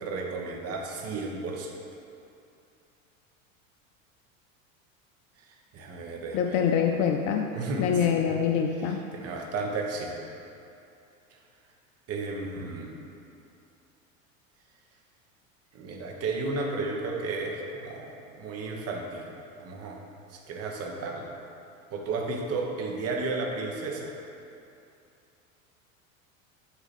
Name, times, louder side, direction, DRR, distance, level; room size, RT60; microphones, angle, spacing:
voice 1, 0.0-1.7 5.4-6.6 7.5-8.4 8.8-10.2 11.3-11.4 12.1-13.0 15.7-20.0 20.3-21.3 21.9-24.1, right 3 dB, 35° right, 0 dB, 1.0 m, -33 dB
voice 2, 6.3-7.5 7.8-9.0, left 7 dB, 40° left, 3 dB, 0.4 m, -25 dB
8.4 x 2.9 x 4.7 m, 2.7 s
hypercardioid pair, 80°, 40 cm